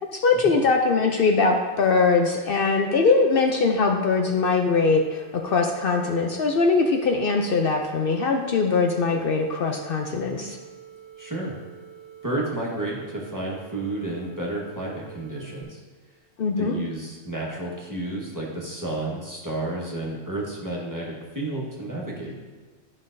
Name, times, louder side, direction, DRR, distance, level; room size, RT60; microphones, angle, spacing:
voice 1, 0.1-10.6 16.4-16.8, left 4 dB, 60° left, 3 dB, 0.7 m, -21 dB
sound 1, 4.2-15.6, right 9 dB, 30° left, 1.5 m, -46 dB
voice 2, 11.2-11.5 12.2-15.8 16.6-22.3, right 2 dB, 15° right, -4 dB, 1.3 m, -31 dB
11.5 x 5.3 x 2.6 m, 1.4 s
omnidirectional pair, 1.1 m